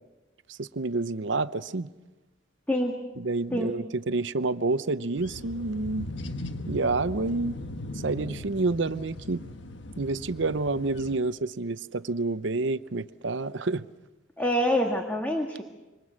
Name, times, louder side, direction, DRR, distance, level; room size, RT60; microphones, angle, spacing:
voice 1, 0.5-1.9 3.2-6.1 6.7-7.6 8.0-9.4 10.0-13.9, right 3 dB, 70° right, 0.7 m, -28 dB
sound 1, 5.2-11.2, left 1 dB, 65° left, 1.4 m, -39 dB
voice 2, 14.4-15.6, equal, 10° left, 1.8 m, -26 dB
27.0 x 24.5 x 6.4 m
head